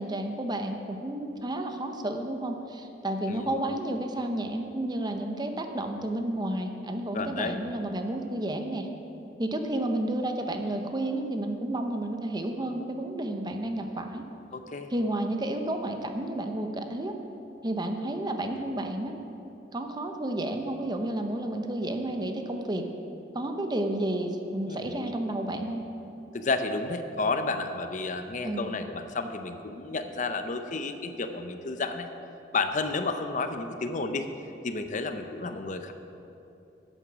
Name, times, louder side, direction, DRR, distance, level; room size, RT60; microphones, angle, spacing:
voice 1, 0.0-8.9 9.4-14.2 14.9-17.2 17.6-19.1 19.7-22.8 23.3-25.8 28.4-28.7, right 1 dB, 25° right, 5 dB, 0.8 m, -31 dB
voice 2, 7.1-7.6 14.5-14.9 24.7-25.0 26.3-32.1 32.5-34.3 34.6-35.9, left 3 dB, 45° left, 8 dB, 0.6 m, -31 dB
11.0 x 9.1 x 6.1 m, 2.9 s
head